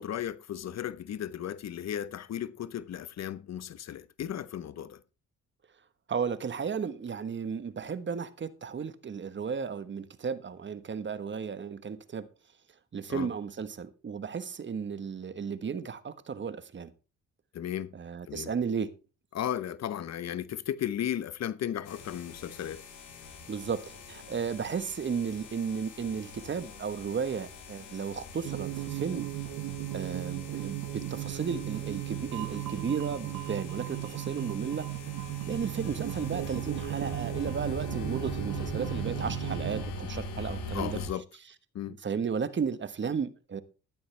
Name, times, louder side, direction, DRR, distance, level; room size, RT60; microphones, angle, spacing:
voice 1, 0.0-5.0 13.1-13.3 17.5-17.9 18.3-18.5 19.3-22.8 40.7-41.2 41.7-41.9, left 10 dB, 60° left, 1.0 m, -35 dB
voice 2, 6.1-12.3 12.9-16.9 17.9-18.9 23.5-29.3 29.9-34.9 35.5-41.0 41.9-43.6, right 6 dB, 40° right, 1.3 m, -34 dB
sound 1, 21.8-41.1, left 2 dB, 85° left, 4.8 m, -42 dB
sound 2, 28.4-39.8, right 17 dB, 85° right, 1.0 m, -36 dB
13.5 x 11.5 x 3.4 m
cardioid pair, 90°, 30 cm